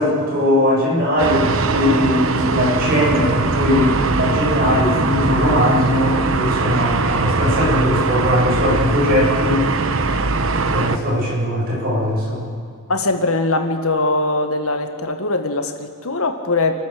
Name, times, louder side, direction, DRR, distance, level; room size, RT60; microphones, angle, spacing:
voice 1, 0.0-9.6 10.7-12.5, left 1 dB, 45° right, -5 dB, 7.7 m, -19 dB
sound 1, 1.2-11.0, right 3 dB, 65° right, 1.0 m, -20 dB
voice 2, 12.9-16.8, left 2 dB, 80° left, 6 dB, 1.8 m, -21 dB
28.0 x 12.5 x 7.8 m, 2.2 s
head